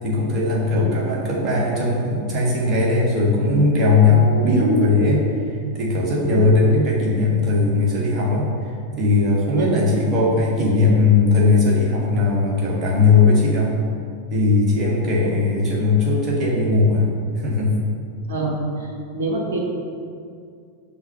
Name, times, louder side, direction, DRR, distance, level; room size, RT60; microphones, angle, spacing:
voice 1, 0.0-5.2 5.5-8.5 9.0-13.8 14.3-17.1 17.3-17.8, left 3 dB, 30° right, -5 dB, 1.7 m, -18 dB
voice 2, 4.4-5.0 6.3-6.4 9.5-9.7 15.2-15.3 18.3-19.6, right 2 dB, 60° right, -1 dB, 1.3 m, -24 dB
5.6 x 4.0 x 5.7 m, 2.3 s
figure-of-eight pair, 90°, 0 cm